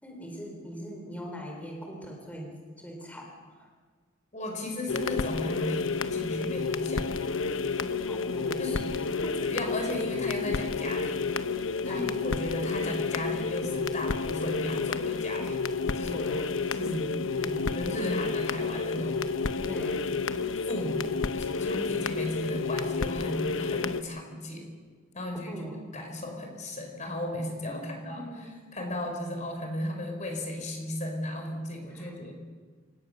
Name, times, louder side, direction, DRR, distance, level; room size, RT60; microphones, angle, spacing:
voice 1, 0.0-3.7 8.1-9.4 11.8-12.2 16.8-17.8 19.6-20.2 25.5-25.8 27.7-28.5 31.9-32.3, equal, 10° left, 0 dB, 4.2 m, -41 dB
voice 2, 4.3-7.3 8.6-8.9 9.4-11.1 11.8-15.5 15.9-16.9 17.7-19.2 20.1-20.2 20.7-21.2 21.6-24.7 25.1-25.6 25.9-32.3, left 1 dB, 35° left, 3 dB, 4.5 m, -35 dB
sound 1, 4.9-24.0, left 4 dB, 80° left, 0.9 m, -30 dB
28.5 x 18.5 x 6.7 m, 1.5 s
head